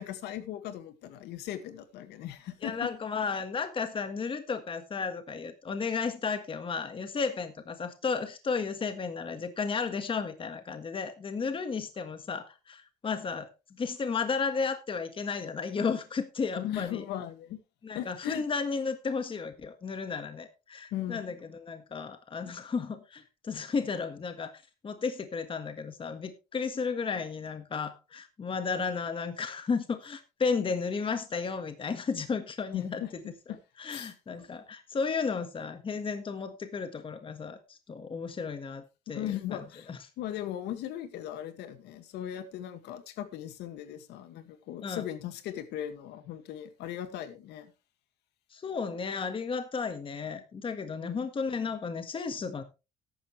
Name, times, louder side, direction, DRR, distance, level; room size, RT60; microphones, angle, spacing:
voice 1, 0.0-2.9 16.6-17.6 17.9-18.4 20.9-21.3 32.7-33.1 33.5-33.6 33.9-34.1 39.1-47.7 51.0-51.3, left 11 dB, 85° left, 1.9 m, -38 dB
voice 2, 2.6-13.5 13.8-17.0 17.8-33.0 33.8-39.6 39.9-40.0 44.8-45.0 48.5-52.6, left 5 dB, 30° left, 1.6 m, -33 dB
14.0 x 11.5 x 3.2 m
cardioid pair, 110°, 17 cm